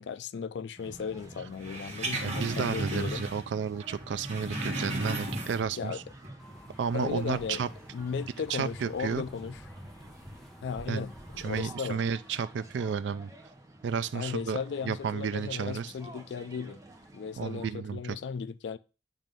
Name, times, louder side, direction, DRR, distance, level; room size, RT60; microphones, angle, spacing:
voice 1, 0.0-3.3 5.8-6.0 6.9-7.6 7.9-9.6 10.6-12.0 14.1-16.8 17.1-18.8, left 6 dB, 80° left, 0.4 m, -36 dB
sound 1, 0.8-17.7, right 1 dB, 20° right, 1.1 m, -51 dB
sound 2, 1.6-3.5 3.8-5.8 6.2-6.3, right 1 dB, 40° right, 1.7 m, -34 dB
voice 2, 2.2-6.0 6.8-7.7 8.5-9.2 10.9-11.1 11.4-13.3 13.8-15.9 17.4-18.1, right 6 dB, 90° right, 0.3 m, -32 dB
sound 3, 6.4-11.7, equal, 5° left, 0.8 m, -50 dB
9.1 x 3.1 x 5.2 m
head